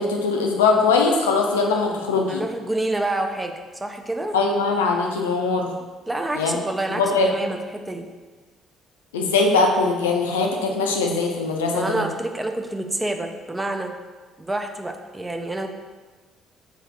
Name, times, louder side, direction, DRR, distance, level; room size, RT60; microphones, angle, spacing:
voice 1, 0.0-2.4 4.3-5.7 6.4-6.6 6.9-7.3 9.1-12.0, left 4 dB, 80° left, 1 dB, 0.4 m, -21 dB
voice 2, 2.3-4.4 6.1-8.1 11.7-13.9 14.4-15.7, right 2 dB, 15° right, 5 dB, 0.4 m, -28 dB
3.6 x 3.5 x 3.2 m, 1.3 s
figure-of-eight pair, 45°, 0 cm